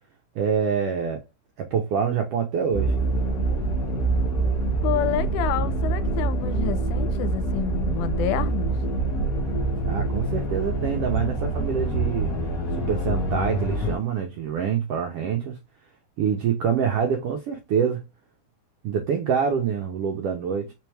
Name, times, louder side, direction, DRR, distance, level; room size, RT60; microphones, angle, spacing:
voice 1, 0.3-1.2 1.6-3.0 9.8-12.3 12.7-15.6 16.2-18.0 18.8-20.7, right 7 dB, 80° right, 1.3 m, -26 dB
sound 1, 2.7-13.9, right 2 dB, 35° left, 1.5 m, -25 dB
voice 2, 4.8-8.8, left 12 dB, 80° left, 1.9 m, -28 dB
4.5 x 3.4 x 3.2 m
omnidirectional pair, 3.5 m